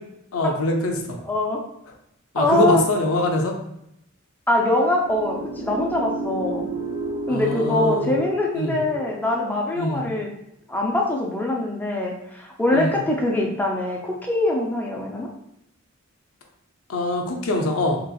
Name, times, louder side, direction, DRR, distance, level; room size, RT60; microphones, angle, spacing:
voice 1, 0.3-1.2 2.3-3.5 7.3-8.1 8.5-8.8 9.7-10.0 12.7-13.0 16.9-18.0, left 1 dB, 75° left, 2 dB, 0.5 m, -23 dB
voice 2, 1.3-1.6 2.4-2.8 4.5-6.7 7.3-10.3 10.7-15.3, left 2 dB, 10° left, -1 dB, 0.5 m, -23 dB
sound 1, 5.0-10.1, right 1 dB, 65° right, 0.7 m, -32 dB
2.9 x 2.9 x 2.3 m, 0.79 s
head